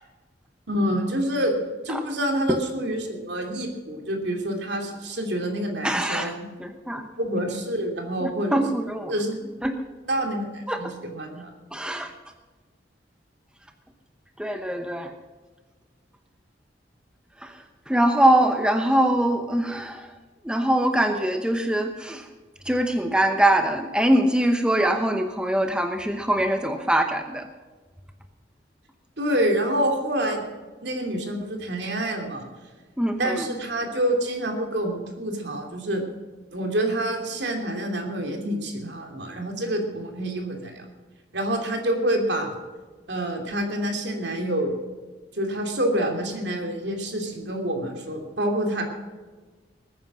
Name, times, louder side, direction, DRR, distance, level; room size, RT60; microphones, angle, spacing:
voice 1, 0.7-1.5 1.8-6.4 6.9-8.6 9.1-9.4 10.1-11.5 29.2-30.4 30.8-32.4 33.2-36.0 36.5-40.8 41.3-42.5 43.1-44.7 45.3-48.8, right 1 dB, 65° right, 3 dB, 3.0 m, -27 dB
voice 2, 5.8-6.3 6.6-7.0 8.2-9.1 9.6-9.8 10.7-10.8 11.7-12.1 14.4-15.1 17.4-17.5 17.9-20.1 20.4-22.2 22.7-27.5 33.0-33.5, right 1 dB, 5° right, 6 dB, 0.9 m, -23 dB
20.5 x 9.4 x 6.2 m, 1.4 s
head